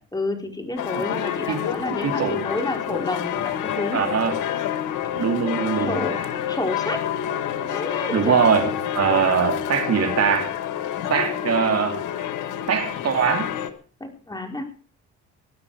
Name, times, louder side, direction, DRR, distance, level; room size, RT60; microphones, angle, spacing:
voice 1, 0.1-4.0 5.8-7.0 7.6-8.4 14.0-14.6, left 2 dB, 15° left, 3 dB, 4.4 m, -30 dB
sound 1, 0.8-13.7, left 10 dB, 85° left, 1.7 m, -28 dB
voice 2, 1.9-2.4 3.9-4.4 5.2-6.1 8.1-10.5 11.1-12.0 12.7-13.5, right 7 dB, 55° right, 6 dB, 2.8 m, -22 dB
18.5 x 12.0 x 4.9 m, 0.40 s
cardioid pair, 90°, 30 cm